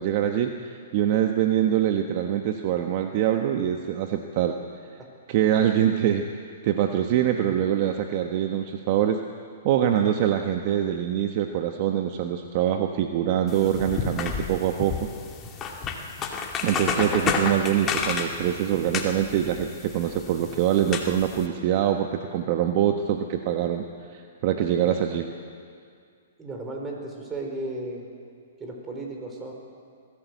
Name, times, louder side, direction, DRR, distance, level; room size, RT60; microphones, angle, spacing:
voice 1, 0.0-4.6 5.3-6.3 6.6-9.2 9.6-15.0 16.6-23.8 24.1-25.3, right 10 dB, 45° right, 5 dB, 1.2 m, -24 dB
sound 1, 13.5-21.5, left 5 dB, 25° left, 2.2 m, -31 dB
voice 2, 26.4-28.0 28.6-29.5, right 2 dB, 15° right, 1 dB, 4.6 m, -35 dB
21.0 x 15.5 x 8.3 m, 2.3 s
hypercardioid pair, 130°, 0 cm